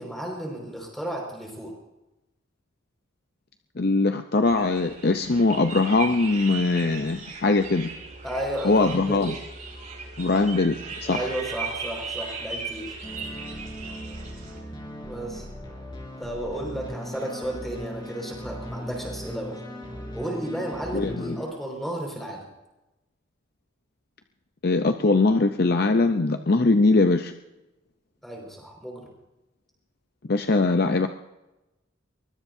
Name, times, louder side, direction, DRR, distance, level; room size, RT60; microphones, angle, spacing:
voice 1, 0.0-1.7 8.2-9.3 11.0-12.9 15.0-15.5 16.2-19.6 20.1-22.4 28.2-29.1, right 1 dB, ahead, 0 dB, 5.1 m, -33 dB
voice 2, 3.8-7.9 8.6-9.3 10.2-11.3 20.9-21.4 24.6-27.3 30.3-31.1, left 3 dB, 50° left, 7 dB, 0.6 m, -21 dB
sound 1, 4.4-14.6, right 4 dB, 40° right, 5.3 m, -37 dB
sound 2, 13.0-21.5, equal, 25° left, 4.1 m, -38 dB
23.5 x 20.5 x 2.7 m, 1.0 s
head